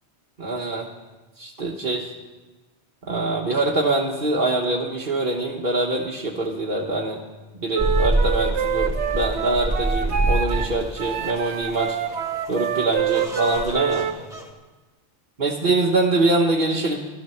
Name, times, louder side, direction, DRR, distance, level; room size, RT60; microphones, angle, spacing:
voice 1, 0.4-0.9 1.4-2.1 3.0-7.2 7.5-12.0 12.5-14.1 15.4-17.0, right 2 dB, 50° right, -3 dB, 1.5 m, -24 dB
Wind instrument woodwind instrument, 7.7-10.7 11.0-14.2, right 7 dB, 75° right, 1.1 m, -26 dB
sound 1, 7.8-14.5, right 1 dB, 5° right, 2.1 m, -26 dB
15.5 x 12.5 x 7.0 m, 1.2 s
omnidirectional pair, 1.2 m